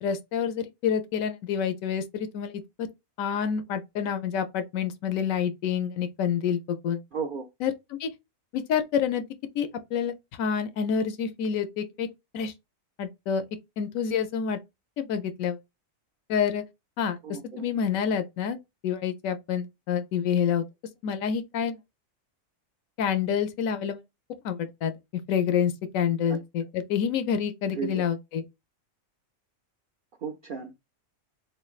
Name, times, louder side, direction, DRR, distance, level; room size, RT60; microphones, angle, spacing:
voice 1, 0.0-2.9 3.2-7.0 7.6-8.1 8.5-9.2 9.5-12.1 12.3-12.5 13.0-13.4 13.8-14.6 15.0-15.6 16.3-16.6 17.0-20.6 21.0-21.8 23.0-24.0 24.4-24.9 25.3-28.4, left 7 dB, 80° left, 1.0 m, -28 dB
voice 2, 7.1-7.5 17.2-17.7 26.3-26.4 27.7-28.0 30.2-30.7, right 6 dB, 65° right, 0.5 m, -34 dB
3.6 x 3.2 x 2.3 m
omnidirectional pair, 1.4 m